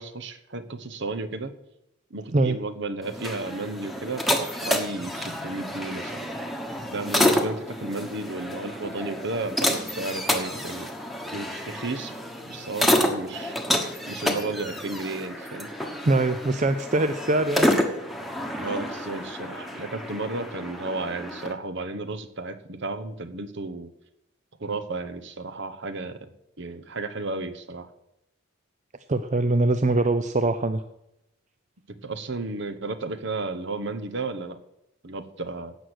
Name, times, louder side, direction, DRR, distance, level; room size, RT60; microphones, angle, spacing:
voice 1, 0.0-1.5 2.1-6.3 6.9-10.9 11.3-12.1 12.4-13.5 14.1-15.7 18.5-23.9 24.6-26.3 26.6-27.9 31.9-34.6 35.0-35.8, right 3 dB, 55° right, 9 dB, 1.1 m, -33 dB
sound 1, 3.0-21.5, left 1 dB, ahead, 1.3 m, -29 dB
voice 2, 16.1-17.8 29.1-30.8, right 2 dB, 35° right, 10 dB, 0.5 m, -23 dB
16.5 x 6.3 x 8.1 m, 0.85 s
head